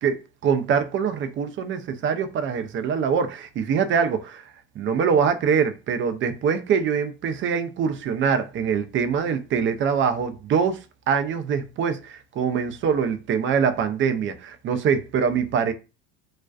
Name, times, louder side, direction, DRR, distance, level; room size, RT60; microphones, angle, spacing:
voice 1, 0.0-15.7, right 6 dB, 35° right, 0.4 m, -24 dB
2.4 x 2.2 x 2.3 m
hypercardioid pair, 80°, 33 cm